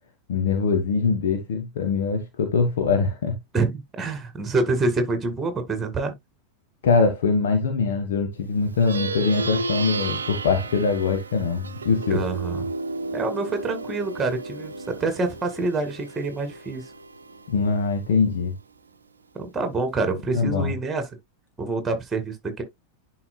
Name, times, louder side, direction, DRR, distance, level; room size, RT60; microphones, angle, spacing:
voice 1, 0.3-3.4 6.8-12.2 17.5-18.6 20.3-20.7, left 4 dB, 60° left, 1.3 m, -23 dB
voice 2, 3.5-6.1 12.1-12.6 13.1-16.8 19.3-21.0 21.6-22.6, right 3 dB, 15° right, 2.1 m, -26 dB
Plucked string instrument, 8.7-18.4, right 3 dB, 70° right, 0.7 m, -33 dB
11.0 x 4.7 x 2.2 m
figure-of-eight pair, 90°, 0 cm